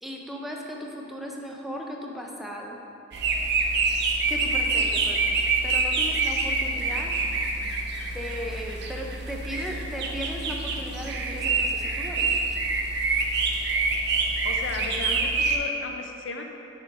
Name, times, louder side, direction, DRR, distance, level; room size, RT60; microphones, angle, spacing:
voice 1, 0.0-2.8 4.3-5.4 5.6-7.1 8.1-12.3, equal, ahead, -1 dB, 0.5 m, -36 dB
sound 1, 3.1-15.6, right 3 dB, 65° right, 0.6 m, -26 dB
voice 2, 14.4-16.4, left 3 dB, 85° left, 3 dB, 0.5 m, -35 dB
5.4 x 4.4 x 4.8 m, 2.8 s
head